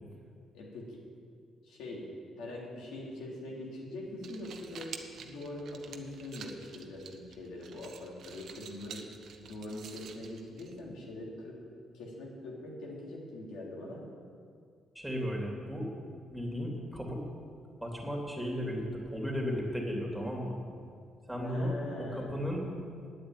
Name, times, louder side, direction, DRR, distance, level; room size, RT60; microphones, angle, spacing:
voice 1, 0.5-1.0 1.6-2.1 2.4-9.0 9.4-11.6 11.9-14.0 21.4-22.5, left 1 dB, 90° left, -3 dB, 3.1 m, -43 dB
sound 1, 4.0-11.1, right 6 dB, 65° right, 1.0 m, -49 dB
voice 2, 14.9-15.9 16.3-17.2 17.8-20.6 21.3-21.7 22.0-22.6, equal, 5° right, -1 dB, 3.3 m, -35 dB
9.3 x 8.7 x 9.1 m, 2.2 s
cardioid pair, 90°, 0 cm